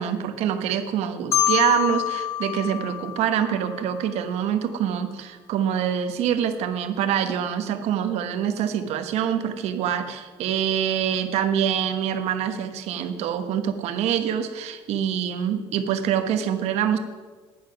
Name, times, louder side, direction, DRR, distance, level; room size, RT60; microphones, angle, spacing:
voice 1, 0.0-17.0, right 9 dB, 90° right, 8 dB, 1.1 m, -25 dB
Marimba xylophone, 1.3-4.2, left 12 dB, 80° left, 0.9 m, -27 dB
10.0 x 10.0 x 5.8 m, 1.5 s
cardioid pair, 175°, 11 cm